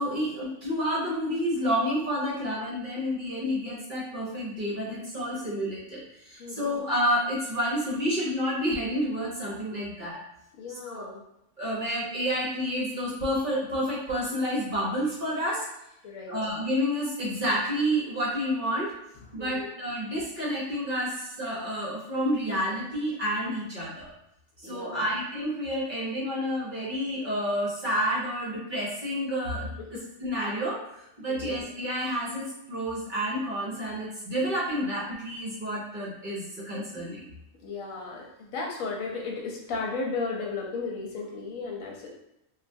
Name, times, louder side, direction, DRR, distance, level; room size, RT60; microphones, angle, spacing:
voice 1, 0.0-10.2 10.9-11.1 11.6-15.6 16.3-18.9 19.3-24.1 24.6-29.7 30.2-30.8 31.2-37.3, equal, 45° right, -5 dB, 0.8 m, -29 dB
voice 2, 6.4-6.7 10.5-11.2 16.0-16.3 19.4-19.7 24.6-25.1 29.8-29.9 31.3-31.7 37.6-42.1, left 4 dB, 80° left, -1 dB, 1.1 m, -35 dB
3.1 x 2.4 x 2.6 m, 0.85 s
omnidirectional pair, 1.4 m